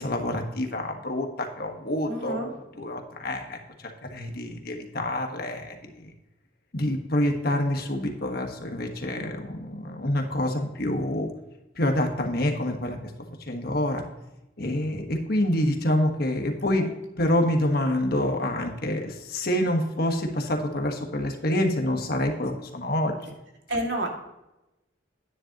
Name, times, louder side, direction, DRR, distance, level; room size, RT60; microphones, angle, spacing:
voice 1, 0.0-2.5 2.8-6.1 6.7-11.3 11.8-13.0 13.5-14.0 14.6-16.9 17.2-23.3, left 1 dB, 55° left, 4 dB, 1.4 m, -27 dB
voice 2, 2.1-2.5 16.8-16.9 23.7-24.1, right 1 dB, 75° right, 1 dB, 2.3 m, -29 dB
10.0 x 10.0 x 2.9 m, 0.94 s
head